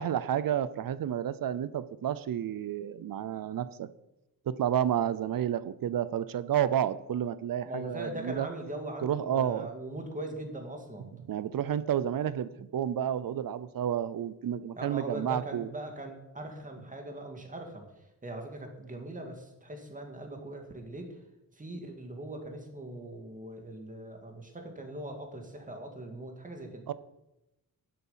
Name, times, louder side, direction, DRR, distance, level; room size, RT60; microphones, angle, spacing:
voice 1, 0.0-3.9 4.5-8.5 9.0-9.7 11.3-15.7 26.9-27.0, right 10 dB, 65° right, 16 dB, 0.7 m, -30 dB
voice 2, 7.7-11.1 14.8-17.8 18.2-21.1 21.6-26.8, right 1 dB, 20° right, 4 dB, 2.1 m, -40 dB
11.0 x 10.5 x 5.7 m, 0.93 s
wide cardioid pair, 170°, 37 cm